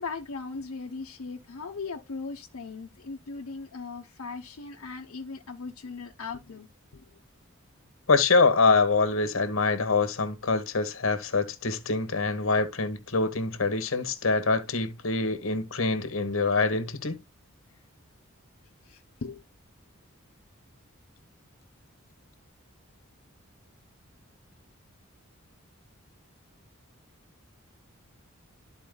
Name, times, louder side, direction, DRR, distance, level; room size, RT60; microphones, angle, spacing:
voice 1, 0.0-6.7 6.9-7.1 18.8-19.4, left 4 dB, 85° left, 0.8 m, -38 dB
voice 2, 8.1-17.2, left 3 dB, 70° left, 1.3 m, -25 dB
13.0 x 4.4 x 2.2 m
head